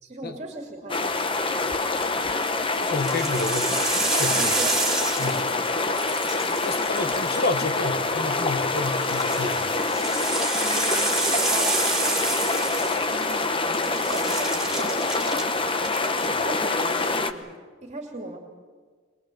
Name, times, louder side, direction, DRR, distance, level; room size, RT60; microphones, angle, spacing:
voice 1, 0.0-2.0 4.3-4.9 5.2-5.4 10.6-18.4, right 2 dB, 35° right, 2.7 m, -39 dB
sound 1, 0.9-17.3, left 3 dB, 25° left, 1.0 m, -26 dB
sound 2, 2.1-2.4 2.9-5.6 5.9-7.8 8.9-13.5 13.7-15.4 15.8-16.3, right 3 dB, ahead, 3.4 m, -28 dB
voice 2, 2.9-4.5 5.2-5.5 6.4-9.7, left 3 dB, 50° left, 1.2 m, -30 dB
24.0 x 20.5 x 7.8 m
head